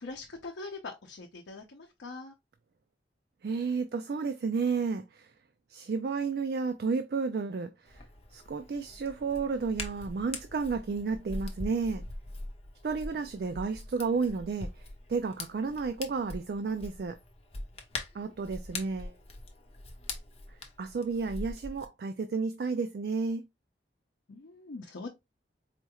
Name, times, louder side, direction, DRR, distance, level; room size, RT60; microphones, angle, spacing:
voice 1, 0.0-2.3 24.3-25.1, left 3 dB, 90° left, 0.6 m, -42 dB
voice 2, 3.4-5.3 5.7-8.0 8.3-12.0 12.8-17.2 18.1-19.2 20.8-23.5, right 4 dB, 60° right, 0.3 m, -32 dB
Hands, 7.9-21.9, left 2 dB, 35° left, 0.6 m, -43 dB
4.3 x 2.3 x 2.9 m
head